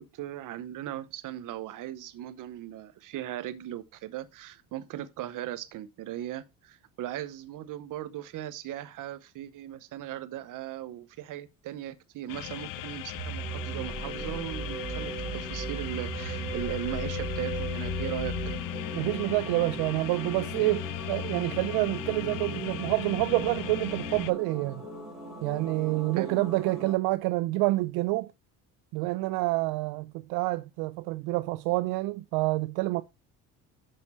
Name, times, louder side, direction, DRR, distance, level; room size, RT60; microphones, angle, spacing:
voice 1, 0.0-18.3 26.1-26.4, right 12 dB, 55° right, 0.9 m, -38 dB
sound 1, 12.3-24.3, left 14 dB, 60° left, 0.6 m, -37 dB
sound 2, 13.2-18.6, right 5 dB, 30° right, 1.0 m, -38 dB
sound 3, 13.3-27.0, right 3 dB, ahead, 3.5 m, -40 dB
voice 2, 18.9-24.8 25.4-28.3 28.9-33.0, right 20 dB, 80° right, 0.5 m, -28 dB
6.7 x 5.5 x 4.2 m
cardioid pair, 105°, 37 cm